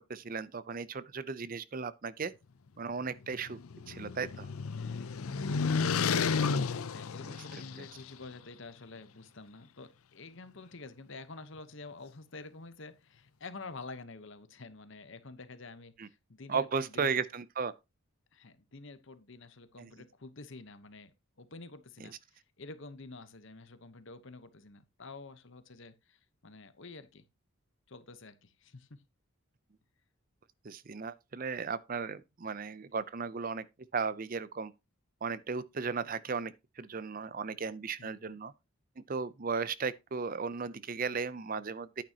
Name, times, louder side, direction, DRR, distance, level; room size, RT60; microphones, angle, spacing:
voice 1, 0.0-2.3 2.8-3.6 3.9-4.5 6.2-6.5 7.2-7.3 7.8-7.9 16.0-16.1 16.5-17.7 19.8-19.9 22.0-22.1 30.6-33.7 33.9-34.7 35.2-38.5 39.0-42.0, right 5 dB, 40° right, 0.5 m, -36 dB
sound 1, 3.2-8.0, left 5 dB, 75° left, 0.6 m, -32 dB
voice 2, 4.7-17.2 18.3-21.1 21.4-27.2 27.9-29.0 38.0-38.4, left 3 dB, 55° left, 1.0 m, -49 dB
10.0 x 9.0 x 2.9 m
head